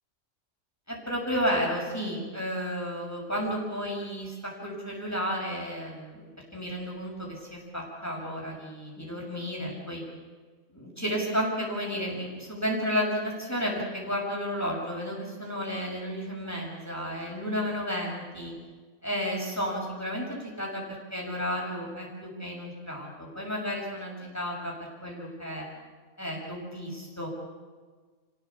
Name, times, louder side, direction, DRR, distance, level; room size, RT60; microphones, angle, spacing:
voice 1, 0.9-10.0 10.7-18.5 19.0-20.8 21.1-24.7 25.0-25.7 26.2-27.3, equal, 10° left, -2 dB, 6.7 m, -32 dB
28.0 x 17.0 x 8.5 m, 1.4 s
omnidirectional pair, 1.4 m